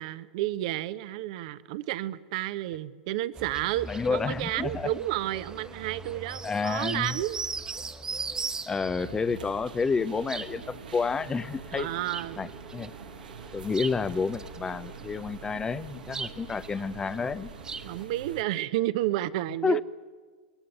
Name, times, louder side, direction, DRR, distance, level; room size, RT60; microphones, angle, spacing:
voice 1, 0.0-7.4 11.7-12.5 17.8-19.8, right 15 dB, 55° right, 15 dB, 0.9 m, -31 dB
sound 1, 3.4-18.1, right 4 dB, 15° right, 1.2 m, -40 dB
voice 2, 3.9-4.9 6.4-7.2 8.7-11.9 12.4-12.9 13.5-17.5 19.6-19.8, left 5 dB, 15° left, 18 dB, 0.6 m, -30 dB
sound 2, 9.0-18.4, right 6 dB, 75° right, 1.2 m, -45 dB
22.0 x 17.0 x 9.5 m, 1.5 s
figure-of-eight pair, 95°, 5 cm